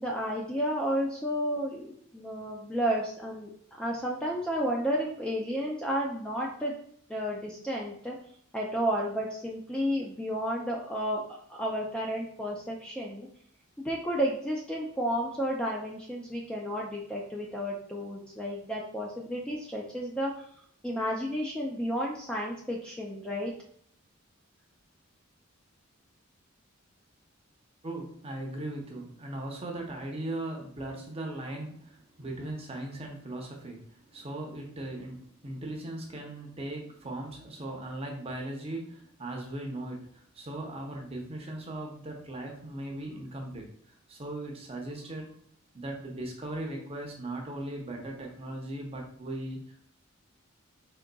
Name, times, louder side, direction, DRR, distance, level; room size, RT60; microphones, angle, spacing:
voice 1, 0.0-3.5 3.8-6.7 7.1-8.1 8.5-11.2 11.5-13.3 13.8-20.4 20.8-23.5, equal, 5° left, -2 dB, 0.4 m, -32 dB
voice 2, 27.8-33.8 34.1-43.7 44.1-45.3 45.7-49.6, right 1 dB, 30° right, 0 dB, 0.7 m, -38 dB
3.8 x 3.6 x 2.2 m, 0.65 s
head